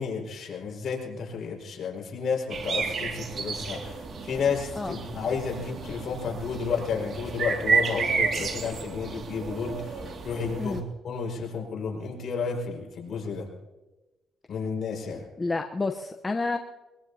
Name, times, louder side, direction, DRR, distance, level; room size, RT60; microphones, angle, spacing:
voice 1, 0.0-13.5 14.5-15.2, left 5 dB, 60° left, 0 dB, 5.2 m, -32 dB
sound 1, 2.5-10.8, right 5 dB, 55° right, 2.2 m, -31 dB
voice 2, 15.1-16.6, left 3 dB, 25° left, 4 dB, 0.9 m, -30 dB
22.5 x 22.0 x 2.8 m, 1.1 s
cardioid pair, 90°, 0 cm